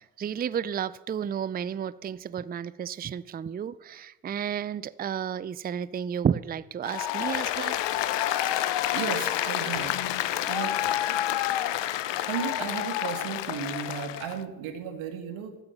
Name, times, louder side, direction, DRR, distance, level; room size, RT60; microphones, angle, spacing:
voice 1, 0.0-7.8, right 8 dB, 20° right, 0.4 m, -32 dB
Applause, 6.8-14.4, left 12 dB, 60° left, 0.8 m, -28 dB
voice 2, 8.4-10.0 10.5-10.8 12.2-15.6, right 8 dB, 70° right, 1.8 m, -35 dB
13.0 x 7.8 x 7.1 m
hypercardioid pair, 45°, 49 cm